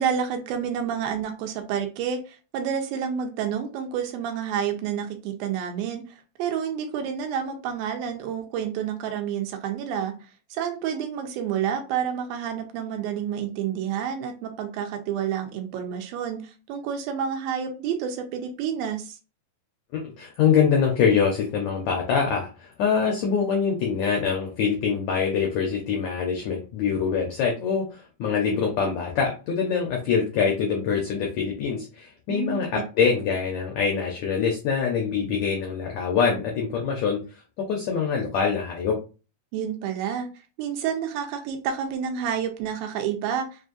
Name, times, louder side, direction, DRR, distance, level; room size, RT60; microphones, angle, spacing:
voice 1, 0.0-6.0 6.4-10.1 10.5-16.4 16.7-19.1 32.3-32.6 39.5-40.3 40.6-43.5, right 8 dB, 85° right, 4 dB, 2.5 m, -29 dB
voice 2, 19.9-37.2 37.6-39.0, left 6 dB, 85° left, 1 dB, 1.6 m, -24 dB
6.2 x 2.5 x 2.6 m, 0.33 s
omnidirectional pair, 4.2 m